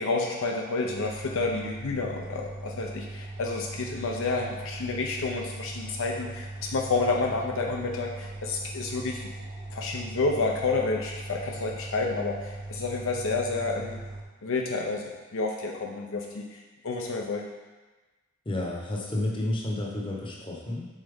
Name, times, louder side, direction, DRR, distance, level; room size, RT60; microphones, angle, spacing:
voice 1, 0.0-9.3 9.7-14.0 14.4-17.5, left 3 dB, 60° left, 1 dB, 0.5 m, -30 dB
sound 1, 0.9-14.2, right 2 dB, 40° right, 0.6 m, -40 dB
voice 2, 18.5-20.9, left 1 dB, 20° left, -2 dB, 0.9 m, -31 dB
7.0 x 4.1 x 3.5 m, 1.2 s
head